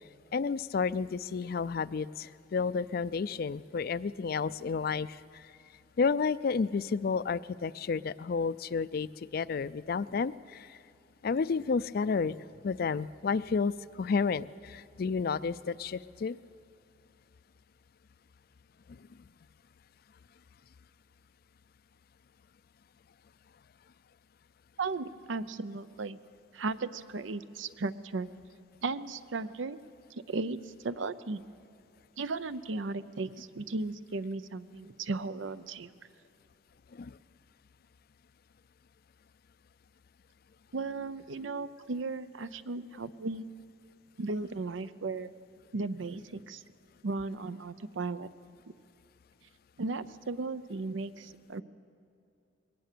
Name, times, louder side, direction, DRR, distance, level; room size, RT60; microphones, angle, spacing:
voice 1, 0.3-5.4 6.0-10.8 11.2-12.4 12.6-16.4 18.9-19.1 36.9-37.2, left 5 dB, 50° left, 17 dB, 0.4 m, -31 dB
voice 2, 24.8-26.2 26.5-28.3 28.8-29.8 30.1-31.4 32.2-35.9 40.7-43.5 44.2-45.3 45.7-46.6 47.0-48.3 49.8-51.6, right 3 dB, 85° right, 14 dB, 0.6 m, -36 dB
21.5 x 18.0 x 6.8 m, 2.8 s
head